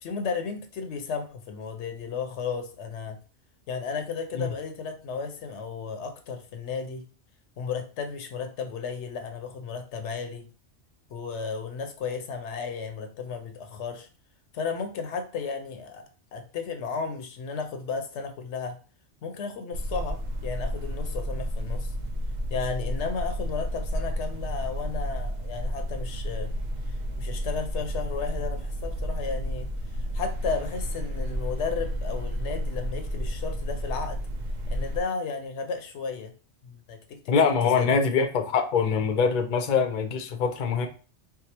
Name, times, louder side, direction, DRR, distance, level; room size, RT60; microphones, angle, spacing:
voice 1, 0.0-3.2 3.7-7.0 7.6-10.5 11.1-14.1 14.5-16.0 16.3-18.8 19.2-21.9 22.5-26.5 27.2-29.7 30.1-34.2 34.7-36.3 36.6-38.0, left 5 dB, 75° left, 7 dB, 0.9 m, -34 dB
sound 1, 19.7-35.0, equal, 65° right, 0.4 m, -31 dB
voice 2, 37.3-40.9, left 5 dB, 55° left, 4 dB, 0.5 m, -24 dB
4.7 x 2.0 x 2.8 m, 0.37 s
omnidirectional pair, 1.2 m